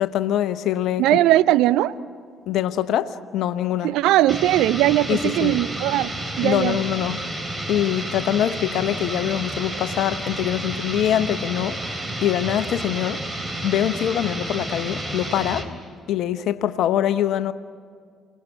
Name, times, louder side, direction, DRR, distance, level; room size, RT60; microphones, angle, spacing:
voice 1, 0.0-1.1 2.5-3.9 5.1-5.6 6.4-7.2 7.7-11.9 12.2-13.2 13.6-15.7 16.1-17.5, left 11 dB, 65° left, 0.8 m, -24 dB
voice 2, 1.0-1.9 3.8-6.1 6.4-6.8, right 14 dB, 70° right, 0.6 m, -19 dB
sound 1, 4.3-15.7, right 1 dB, 25° right, 3.8 m, -31 dB
28.5 x 18.5 x 9.8 m
hypercardioid pair, 45°, 0 cm